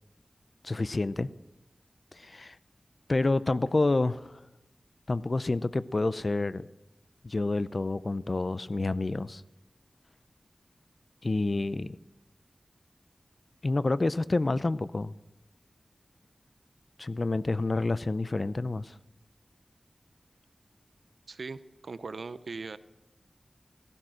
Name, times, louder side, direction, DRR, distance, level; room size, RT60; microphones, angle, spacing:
voice 1, 0.6-1.3 2.1-2.6 3.1-4.4 5.1-6.7 7.2-9.4 11.2-12.0 13.6-15.1 17.0-18.9, left 2 dB, 50° left, 16 dB, 0.6 m, -28 dB
voice 2, 21.3-22.8, right 4 dB, 90° right, 14 dB, 0.6 m, -39 dB
15.5 x 13.5 x 6.3 m, 0.99 s
wide cardioid pair, 60°, 0 cm